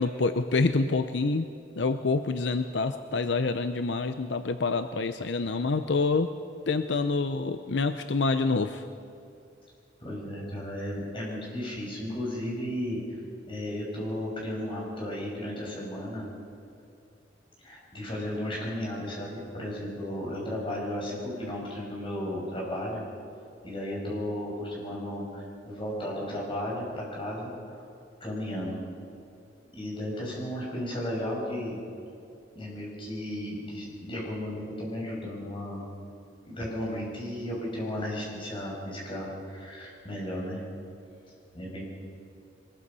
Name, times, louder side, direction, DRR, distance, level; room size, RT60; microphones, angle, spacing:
voice 1, 0.0-1.5 1.8-6.3 6.7-8.8, left 3 dB, 75° left, 9 dB, 0.7 m, -27 dB
voice 2, 10.0-13.0 13.5-16.3 17.6-23.0 23.6-27.8 28.2-28.8 29.7-31.8 32.5-35.8 36.4-40.6 41.5-41.8, left 1 dB, 30° left, -3 dB, 6.6 m, -34 dB
23.0 x 21.0 x 5.6 m, 2.6 s
head